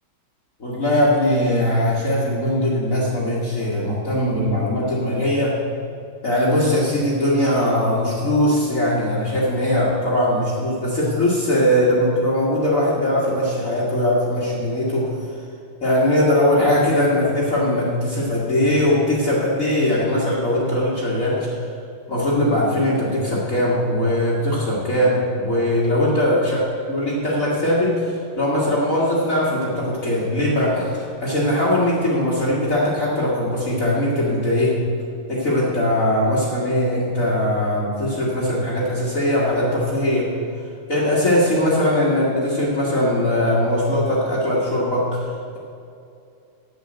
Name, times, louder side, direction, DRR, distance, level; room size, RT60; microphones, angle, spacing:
voice 1, 0.6-5.6 6.2-15.2 15.8-21.5 22.1-26.6 26.9-27.9 28.4-34.8 35.3-40.3 40.9-45.2, left 1 dB, 40° left, -7 dB, 2.1 m, -20 dB
9.2 x 8.0 x 7.6 m, 2.5 s
omnidirectional pair, 2.3 m